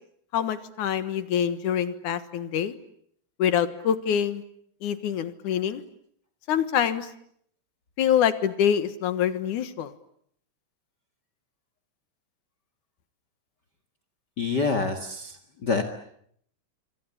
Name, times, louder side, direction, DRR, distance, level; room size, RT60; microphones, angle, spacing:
voice 1, 0.3-2.7 3.4-4.4 4.8-5.8 6.5-7.1 8.0-9.9, left 9 dB, 85° left, 12 dB, 2.9 m, -25 dB
voice 2, 14.4-15.3 15.6-15.8, left 4 dB, 40° left, 9 dB, 2.3 m, -26 dB
27.5 x 25.0 x 8.5 m, 0.69 s
omnidirectional pair, 3.5 m